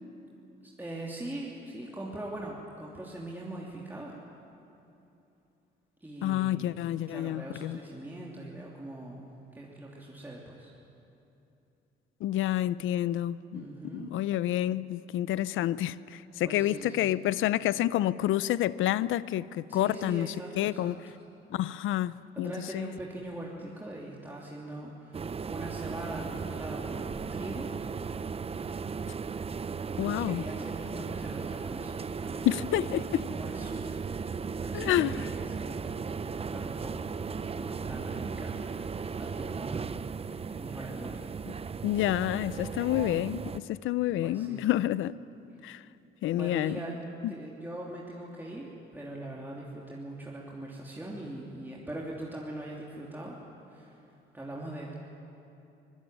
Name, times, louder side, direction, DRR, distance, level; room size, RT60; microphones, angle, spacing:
voice 1, 0.6-4.2 6.0-10.7 13.5-14.1 16.4-17.1 19.7-20.9 22.3-27.7 30.0-32.9 33.3-33.9 34.2-38.8 39.2-40.0 40.3-41.2 44.2-44.6 46.4-47.0 47.3-53.4 53.7-54.0 54.3-54.9, right 1 dB, 10° right, 3.0 m, -42 dB
voice 2, 6.2-7.8 12.2-21.0 21.5-22.9 30.0-30.4 32.4-33.3 34.7-35.1 41.8-45.1 45.6-45.8 46.2-46.8 47.2-47.3, left 13 dB, 80° left, 0.6 m, -29 dB
sound 1, 25.1-43.6, right 5 dB, 30° right, 0.7 m, -36 dB
24.5 x 16.5 x 9.0 m
cardioid pair, 90°, 20 cm